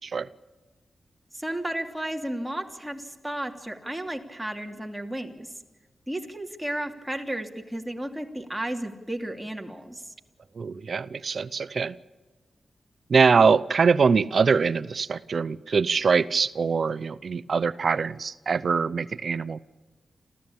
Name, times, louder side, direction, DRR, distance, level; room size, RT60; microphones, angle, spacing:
voice 1, 1.3-5.5 6.1-10.0, right 1 dB, 5° right, 3 dB, 3.0 m, -33 dB
voice 2, 10.6-11.9 13.1-19.6, right 5 dB, 65° right, 16 dB, 0.7 m, -23 dB
27.0 x 15.5 x 8.8 m, 1.2 s
cardioid pair, 65°, 0 cm